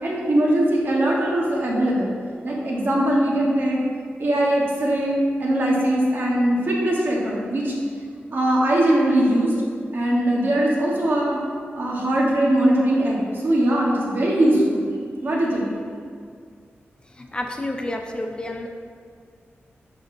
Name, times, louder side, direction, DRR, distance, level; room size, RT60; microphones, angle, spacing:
voice 1, 0.0-2.1 2.4-3.8 4.2-7.7 8.3-9.5 9.9-11.4 11.8-14.9 15.2-15.7, right 1 dB, 55° right, -3 dB, 1.2 m, -21 dB
voice 2, 17.2-18.7, left 1 dB, 20° left, 3 dB, 0.3 m, -29 dB
11.0 x 3.9 x 2.6 m, 2.1 s
wide cardioid pair, 160°, 4 cm